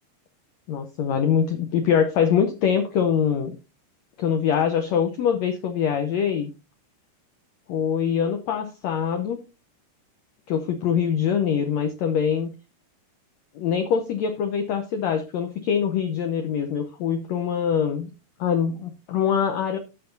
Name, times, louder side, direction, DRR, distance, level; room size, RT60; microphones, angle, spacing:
voice 1, 0.7-3.6 4.2-6.5 7.7-9.4 10.5-12.5 13.5-18.1 18.4-19.8, left 7 dB, 80° left, 7 dB, 1.5 m, -24 dB
16.5 x 5.8 x 2.6 m, 0.28 s
omnidirectional pair, 4.2 m